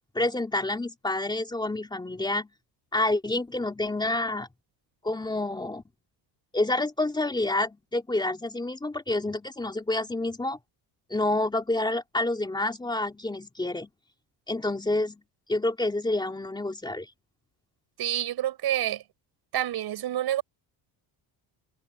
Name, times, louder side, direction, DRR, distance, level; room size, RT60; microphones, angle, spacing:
voice 1, 0.1-2.5 2.9-4.5 5.0-5.8 6.5-10.6 11.1-13.9 14.5-15.2 15.5-17.1, left 2 dB, 10° left, 3.2 m, -28 dB
voice 2, 18.0-19.0 19.5-20.4, right 12 dB, 55° right, 5.7 m, -28 dB
cardioid pair, 165°, 45 cm